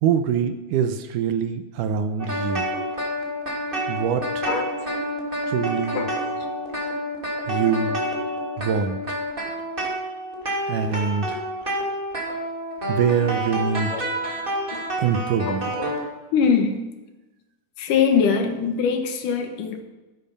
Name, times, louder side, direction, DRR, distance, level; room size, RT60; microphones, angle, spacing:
voice 1, 0.0-2.7 3.9-4.5 5.5-6.0 7.5-8.0 8.6-9.0 10.7-11.4 12.9-13.9 15.0-15.7, right 7 dB, 75° right, 9 dB, 2.3 m, -24 dB
sound 1, 2.2-16.0, equal, 15° right, 2.5 m, -28 dB
voice 2, 4.4-4.8 5.9-6.5 13.9-14.1 14.7-14.8 15.5-15.9 16.3-16.8 17.8-19.8, left 6 dB, 70° left, 6 dB, 2.7 m, -23 dB
13.5 x 11.0 x 5.6 m, 1.1 s
omnidirectional pair, 3.9 m